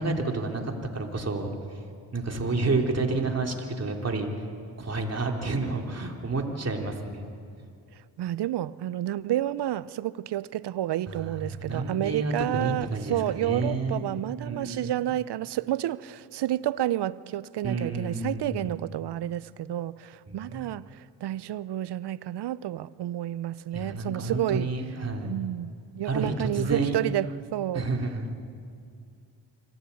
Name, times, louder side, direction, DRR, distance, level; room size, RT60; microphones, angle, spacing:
voice 1, 0.0-1.5 2.1-4.3 4.8-7.2 11.1-14.1 14.4-14.9 17.6-18.7 20.3-20.7 23.7-25.3 26.1-27.0 27.7-28.2, right 3 dB, 30° right, 3.6 m, -30 dB
voice 2, 8.2-24.7 25.2-27.9, right 13 dB, 60° right, 0.7 m, -30 dB
25.5 x 16.0 x 8.5 m
supercardioid pair, 55°, 47 cm